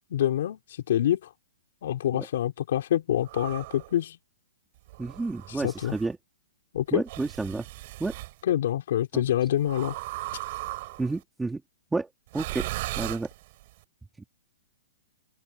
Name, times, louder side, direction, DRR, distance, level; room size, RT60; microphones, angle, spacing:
voice 1, 0.1-1.3 1.8-4.2 5.6-6.0 6.7-7.0 8.4-10.0, left 11 dB, 55° left, 3.5 m, -26 dB
sound 1, 3.2-3.9 4.9-6.1 7.1-8.3 9.6-11.2 12.3-13.7, right 19 dB, 40° right, 7.0 m, -37 dB
voice 2, 5.0-6.2 6.9-7.7 8.0-8.1 9.1-9.2 11.0-11.6 11.9-13.3, right 3 dB, 5° right, 3.0 m, -31 dB
open air
hypercardioid pair, 160°, 0 cm